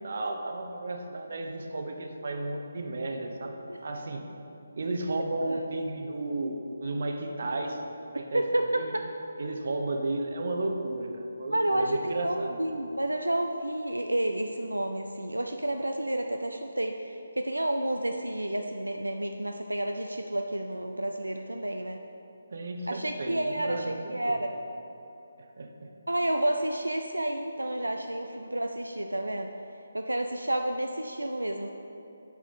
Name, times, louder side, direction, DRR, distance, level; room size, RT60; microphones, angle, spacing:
voice 1, 0.0-4.3 4.8-8.9 9.4-12.6 22.5-24.4 25.6-25.9 27.8-27.9, right 2 dB, 55° right, 4 dB, 0.9 m, -33 dB
voice 2, 11.5-22.0 22.9-24.5 26.1-29.5 29.9-31.7, right 1 dB, 85° right, 4 dB, 0.4 m, -30 dB
8.1 x 4.9 x 5.6 m, 2.9 s
figure-of-eight pair, 150°, 0 cm